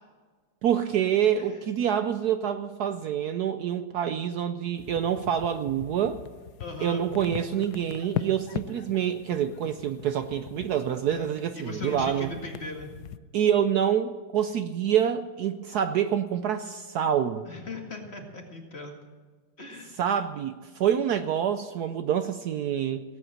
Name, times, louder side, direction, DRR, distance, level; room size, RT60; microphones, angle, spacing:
voice 1, 0.6-6.2 6.8-12.3 13.3-17.5 20.0-23.0, right 9 dB, 70° right, 9 dB, 1.0 m, -27 dB
sound 1, 4.8-13.2, left 10 dB, 70° left, 1.1 m, -40 dB
voice 2, 6.6-7.1 11.1-11.3 11.6-12.9 17.5-18.9 19.6-19.9, left 2 dB, 35° left, 1 dB, 2.2 m, -39 dB
18.0 x 8.5 x 7.8 m, 1.5 s
omnidirectional pair, 2.0 m